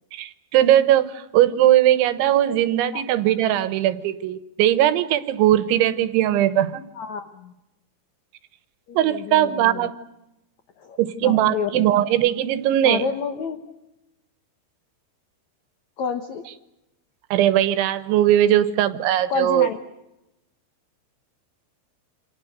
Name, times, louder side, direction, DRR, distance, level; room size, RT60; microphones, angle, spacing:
voice 1, 0.1-6.8 9.0-10.0 11.0-13.1 17.3-19.7, right 12 dB, 85° right, 14 dB, 3.5 m, -19 dB
voice 2, 6.9-7.5 8.9-9.9 10.8-11.9 12.8-13.7 16.0-16.5 19.3-19.8, left 6 dB, 85° left, 8 dB, 1.6 m, -29 dB
28.5 x 26.0 x 6.7 m, 0.93 s
omnidirectional pair, 5.3 m